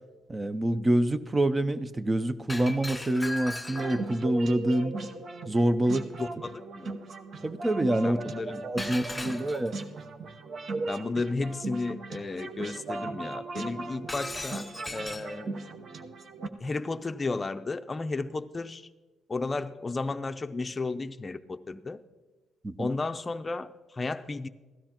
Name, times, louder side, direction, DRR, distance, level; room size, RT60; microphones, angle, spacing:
voice 1, 0.3-4.9 5.5-6.1 7.4-8.2 8.6-9.7 22.6-22.9, right 1 dB, 20° right, 13 dB, 0.6 m, -26 dB
Shatter, 2.5-4.2 8.8-9.8 14.1-15.3, left 2 dB, 10° left, 2.1 m, -38 dB
sound 1, 3.7-16.5, right 3 dB, 55° right, 0.9 m, -38 dB
voice 2, 6.2-6.9 8.0-8.8 9.1-9.4 10.9-14.7 14.9-15.5 16.6-18.9 19.3-22.0 22.8-24.5, left 3 dB, 25° left, 9 dB, 0.6 m, -33 dB
16.0 x 13.0 x 2.9 m, 1.2 s
cardioid pair, 90°, 0 cm